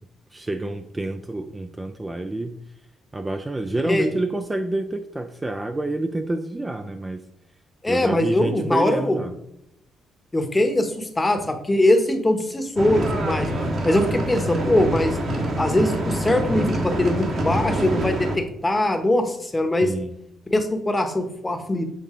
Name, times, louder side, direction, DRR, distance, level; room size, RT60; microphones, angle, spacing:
voice 1, 0.3-2.6 3.1-7.2 7.9-9.4 19.8-20.2, right 2 dB, 15° right, 6 dB, 0.4 m, -28 dB
voice 2, 7.8-9.2 10.3-13.5 13.8-15.2 15.6-19.9 20.5-21.8, left 1 dB, 15° left, 6 dB, 1.0 m, -22 dB
sound 1, 12.8-18.4, right 1 dB, 55° right, 1.5 m, -25 dB
7.5 x 4.0 x 3.7 m, 0.78 s
cardioid pair, 90°, 0 cm